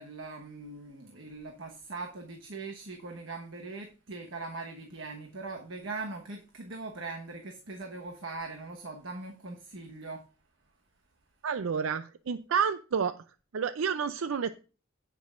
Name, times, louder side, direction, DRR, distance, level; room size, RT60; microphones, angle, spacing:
voice 1, 0.0-10.2, right 3 dB, 70° right, 2 dB, 1.2 m, -41 dB
voice 2, 11.4-13.2 13.5-14.5, right 6 dB, 90° right, 11 dB, 0.5 m, -29 dB
17.0 x 6.2 x 2.5 m, 0.35 s
head